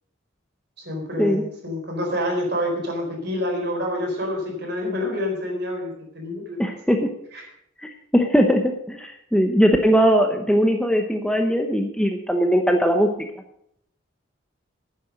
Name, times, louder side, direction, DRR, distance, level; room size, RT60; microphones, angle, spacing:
voice 1, 0.8-6.6 7.3-7.5, left 1 dB, 50° right, 1 dB, 4.3 m, -27 dB
voice 2, 6.6-7.1 7.8-13.1, equal, 5° left, 4 dB, 0.8 m, -20 dB
11.0 x 9.8 x 6.4 m, 0.72 s
head